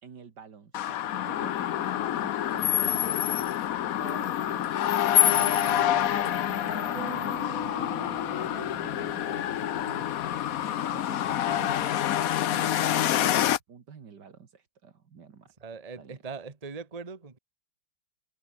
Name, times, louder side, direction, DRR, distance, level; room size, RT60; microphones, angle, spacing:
voice 1, 0.0-3.2 4.0-4.7 5.2-11.9 12.5-15.5 16.0-16.2, right 6 dB, 60° right, 2.4 m, -47 dB
sound 1, 0.7-13.6, left 11 dB, 60° left, 1.0 m, -27 dB
sound 2, 6.9-10.7, right 12 dB, 85° right, 1.7 m, -45 dB
voice 2, 15.6-17.4, right 4 dB, 20° right, 1.4 m, -40 dB
omnidirectional pair, 2.2 m